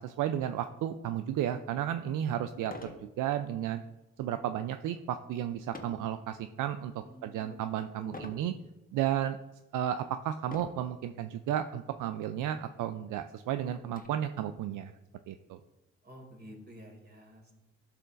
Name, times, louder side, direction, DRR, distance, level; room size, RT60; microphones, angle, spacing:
voice 1, 0.0-3.8 4.2-6.9 7.2-8.5 8.9-9.4 9.7-14.9 15.3-15.6, right 10 dB, 65° right, 9 dB, 0.5 m, -33 dB
sound 1, 1.7-1.8 2.6-3.1 3.5-3.8 5.7-6.1 6.7-7.1 8.1-8.5 9.2-9.3 10.4-10.9 11.9-12.1 12.4-12.5 12.9-14.1, left 2 dB, 25° left, 1.3 m, -45 dB
voice 2, 7.0-8.5 16.0-17.5, equal, 30° right, 1 dB, 2.6 m, -51 dB
12.0 x 5.6 x 2.5 m, 1.0 s
hypercardioid pair, 40°, 33 cm